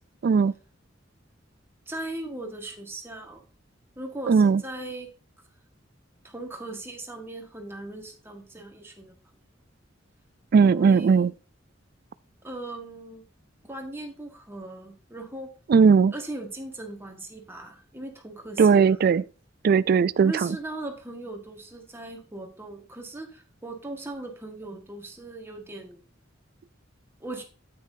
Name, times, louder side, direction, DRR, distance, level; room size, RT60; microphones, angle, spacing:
voice 1, 0.2-0.5 4.3-4.6 10.5-11.3 15.7-16.1 18.6-19.2 19.6-20.3, right 5 dB, 50° right, 0.3 m, -18 dB
voice 2, 1.9-3.4 3.9-5.1 6.2-9.1 10.6-11.3 12.4-13.2 13.6-15.5 16.1-19.1 20.2-26.0 27.2-27.4, right 2 dB, 10° right, 1.5 m, -38 dB
9.1 x 8.5 x 2.7 m
head